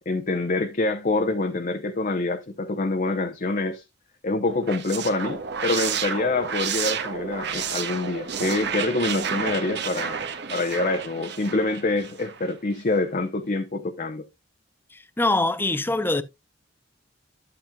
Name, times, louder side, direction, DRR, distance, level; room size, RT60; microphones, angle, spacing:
voice 1, 0.1-3.8 4.2-10.2 10.5-14.3, left 2 dB, 45° left, 0.8 m, -26 dB
sound 1, 4.5-12.5, right 7 dB, 65° right, 1.2 m, -31 dB
voice 2, 15.2-16.2, left 2 dB, 10° left, 0.6 m, -23 dB
11.5 x 7.3 x 2.3 m
head